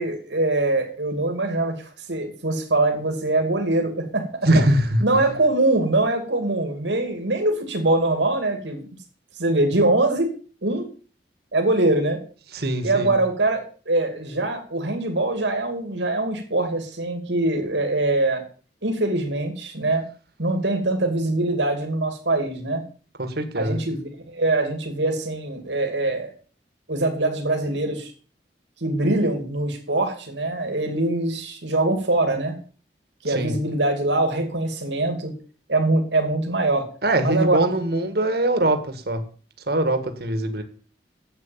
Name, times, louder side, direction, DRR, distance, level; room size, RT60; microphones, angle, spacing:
voice 1, 0.0-1.7 2.1-4.3 5.0-8.8 9.4-10.3 10.6-10.9 11.5-12.2 12.8-18.4 18.8-20.0 20.4-22.8 23.5-26.3 26.9-28.1 28.8-32.5 33.2-35.3 35.7-36.9 37.2-37.6, right 2 dB, 90° right, 3 dB, 2.8 m, -23 dB
voice 2, 4.5-5.0 12.5-13.1 23.2-23.8 33.3-33.5 37.0-39.2 39.7-40.6, right 1 dB, 60° right, 8 dB, 1.7 m, -22 dB
11.0 x 8.2 x 7.3 m, 0.41 s
head